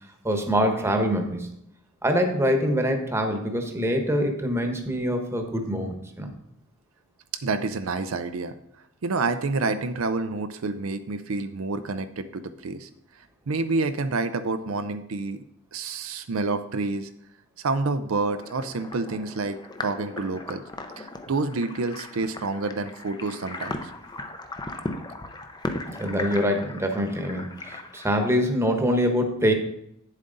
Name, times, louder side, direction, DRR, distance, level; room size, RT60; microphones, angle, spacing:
voice 1, 0.2-1.5 2.0-6.3 26.0-29.5, equal, 15° right, 4 dB, 1.1 m, -24 dB
voice 2, 7.4-8.5 9.0-12.9 13.2-15.4 15.7-17.1 17.6-20.6 21.0-23.9, right 3 dB, 75° right, 9 dB, 0.5 m, -28 dB
sound 1, 18.3-28.2, left 2 dB, 20° left, 0.6 m, -37 dB
8.8 x 7.4 x 3.9 m, 0.76 s
head